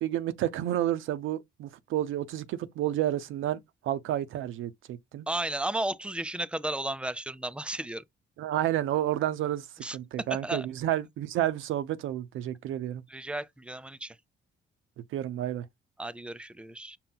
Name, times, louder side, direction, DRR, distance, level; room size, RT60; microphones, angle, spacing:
voice 1, 0.0-5.3 8.4-9.7 9.9-13.0 15.1-15.7, right 12 dB, 80° right, 0.6 m, -30 dB
voice 2, 5.3-8.0 9.8-10.0 10.4-10.7 13.1-14.2 16.0-17.0, right 1 dB, 5° right, 0.3 m, -34 dB
5.7 x 2.1 x 3.8 m
cardioid pair, 90°, 20 cm